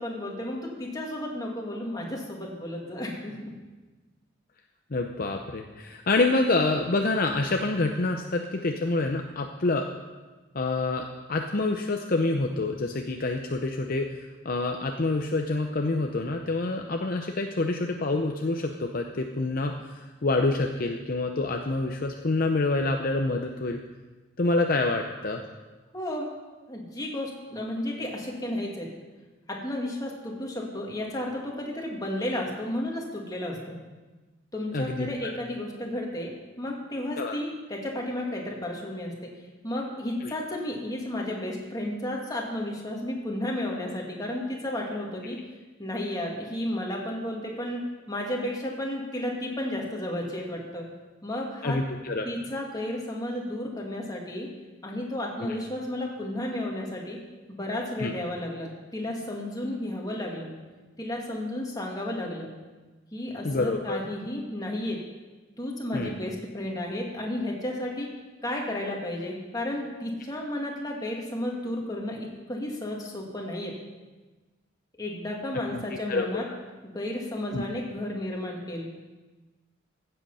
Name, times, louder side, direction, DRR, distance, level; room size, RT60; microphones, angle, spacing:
voice 1, 0.0-3.5 25.9-26.3 26.7-28.9 29.5-33.8 34.5-39.1 39.6-45.4 45.8-47.8 48.1-50.8 51.2-51.8 52.2-54.5 54.8-57.2 57.5-60.5 61.0-62.5 63.1-65.0 65.6-68.1 68.4-73.7 75.0-76.5 76.8-78.9, left 1 dB, 20° left, -1 dB, 2.2 m, -33 dB
voice 2, 4.9-9.9 10.5-14.2 14.4-23.8 24.4-25.4 34.7-35.3 37.2-37.4 40.2-40.3 51.6-52.3 55.4-55.6 58.0-58.1 63.4-64.0 65.9-66.1 75.7-75.8 76.1-76.5 77.5-77.7, left 2 dB, 45° left, 3 dB, 0.7 m, -27 dB
15.0 x 7.9 x 5.6 m, 1.2 s
head